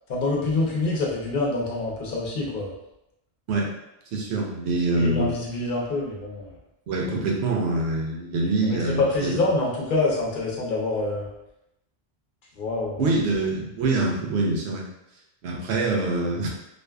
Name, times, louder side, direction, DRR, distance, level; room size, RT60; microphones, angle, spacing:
voice 1, 0.1-2.7 4.9-6.5 8.6-11.3 12.6-13.1, left 2 dB, 55° left, -3 dB, 0.8 m, -26 dB
voice 2, 4.1-5.3 6.9-9.4 13.0-14.8 15.4-16.5, right 2 dB, 80° right, -1 dB, 0.9 m, -25 dB
2.5 x 2.3 x 2.2 m, 0.87 s
omnidirectional pair, 1.1 m